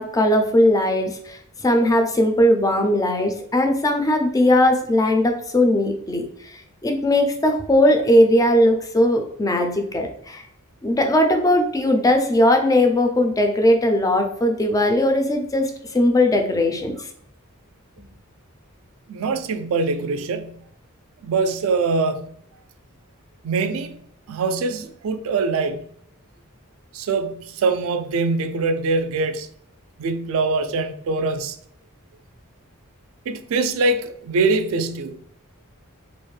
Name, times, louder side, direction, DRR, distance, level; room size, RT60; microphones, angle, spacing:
voice 1, 0.0-10.4 10.8-17.1, left 1 dB, 15° left, 0.3 m, -19 dB
voice 2, 19.1-20.6 21.2-22.4 23.4-24.0 24.3-25.9 26.9-29.5 30.0-31.6 33.3-35.2, right 3 dB, 65° right, 0.3 m, -23 dB
2.4 x 2.1 x 3.1 m
head